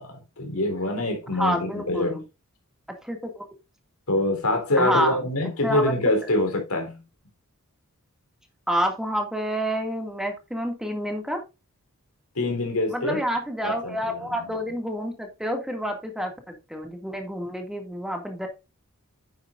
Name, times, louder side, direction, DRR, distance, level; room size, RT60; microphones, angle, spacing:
voice 1, 0.0-2.2 4.1-7.0 12.4-13.2 13.6-14.6, left 1 dB, 80° left, 3.8 m, -25 dB
voice 2, 1.3-2.2 3.0-3.5 4.8-5.2 5.6-5.9 8.7-11.4 12.9-18.5, equal, 5° right, 2.2 m, -28 dB
9.4 x 9.3 x 2.6 m
head